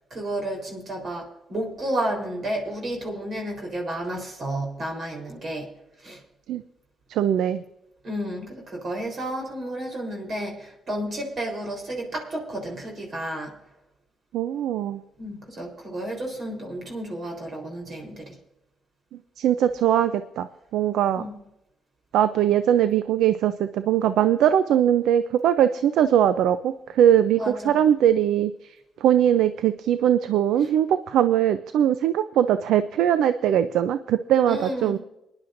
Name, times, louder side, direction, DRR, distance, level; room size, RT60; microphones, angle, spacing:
voice 1, 0.1-5.7 6.0-6.2 8.0-13.6 15.2-18.4 21.1-21.4 27.4-27.9 34.5-35.0, right 1 dB, 50° right, 1 dB, 3.8 m, -31 dB
voice 2, 7.1-7.6 14.3-15.0 19.4-20.5 20.7-21.2 22.1-27.4 27.6-28.5 29.0-35.0, right 10 dB, 80° right, 12 dB, 0.5 m, -21 dB
23.0 x 10.5 x 2.6 m, 0.85 s
cardioid pair, 90°, 0 cm